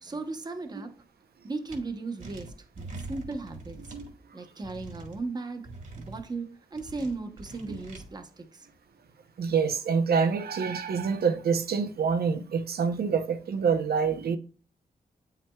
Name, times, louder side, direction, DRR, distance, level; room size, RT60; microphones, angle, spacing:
voice 1, 0.0-0.9 1.4-4.0 4.3-8.7, right 3 dB, 25° right, 0.9 m, -37 dB
sound 1, 1.7-1.8 2.2-4.1 4.6-5.2 5.6-6.2 6.7-8.0, right 2 dB, 60° right, 1.9 m, -43 dB
voice 2, 9.4-14.4, right 6 dB, 90° right, 0.8 m, -26 dB
8.9 x 5.8 x 2.3 m
wide cardioid pair, 170°, 16 cm